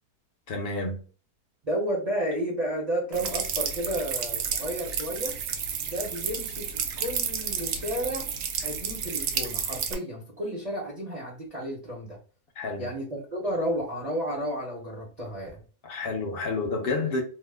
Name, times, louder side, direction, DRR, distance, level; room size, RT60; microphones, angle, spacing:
voice 1, 0.5-1.0 12.6-12.9 15.8-17.2, left 3 dB, 50° left, 0.7 m, -29 dB
voice 2, 1.6-5.4 5.9-8.3 8.6-12.2 12.8-15.6, equal, 35° right, 0.7 m, -32 dB
sound 1, 3.1-9.9, right 7 dB, 70° right, 0.8 m, -31 dB
2.8 x 2.0 x 3.3 m
omnidirectional pair, 1.7 m